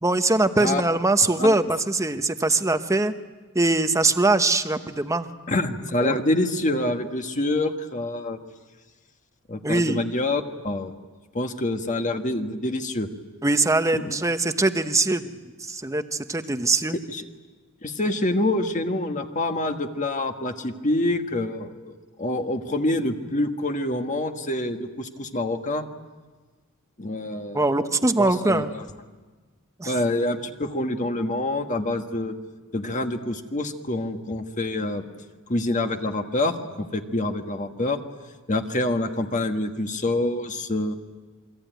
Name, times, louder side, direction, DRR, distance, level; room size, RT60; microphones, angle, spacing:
voice 1, 0.0-3.1 3.5-5.3 6.0-6.2 9.6-10.0 13.4-15.3 15.6-17.0 27.5-28.7 29.8-29.9, right 2 dB, 15° right, 9 dB, 1.0 m, -22 dB
voice 2, 5.5-8.4 9.5-10.9 11.3-13.1 13.9-14.2 17.1-17.2 17.8-25.9 27.0-27.7 28.2-28.9 29.8-32.3 32.7-35.0 35.5-38.0 38.5-40.9, left 2 dB, 35° left, 5 dB, 1.5 m, -26 dB
28.0 x 23.0 x 9.2 m, 1.3 s
head